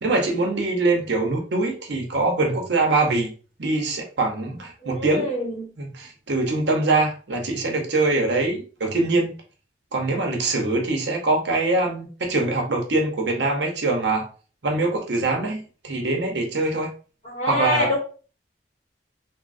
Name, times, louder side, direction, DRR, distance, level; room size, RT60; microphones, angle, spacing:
voice 1, 0.0-3.3 3.6-5.3 5.8-9.3 9.9-14.3 14.6-16.9 17.4-17.9, right 2 dB, 65° right, 2 dB, 0.8 m, -23 dB
voice 2, 4.8-5.7 17.2-18.0, left 1 dB, 40° left, -3 dB, 0.8 m, -25 dB
3.6 x 2.0 x 2.5 m, 0.37 s
head